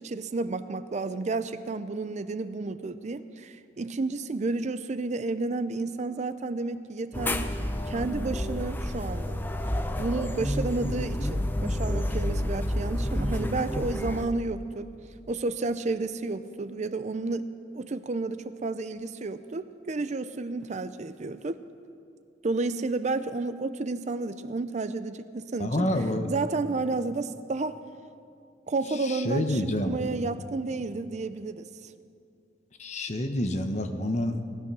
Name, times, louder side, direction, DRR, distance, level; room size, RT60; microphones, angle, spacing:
voice 1, 0.0-7.5 7.9-9.4 10.0-14.9 15.3-17.4 17.7-21.6 22.4-25.9 26.3-27.8 28.7-31.9, right 3 dB, 40° right, 12 dB, 0.5 m, -31 dB
sound 1, 7.1-14.3, left 1 dB, 10° left, 0.7 m, -29 dB
voice 2, 25.6-26.3 29.0-30.0 32.8-34.5, left 1 dB, 40° left, 6 dB, 1.1 m, -28 dB
18.5 x 12.5 x 6.1 m, 2.4 s
head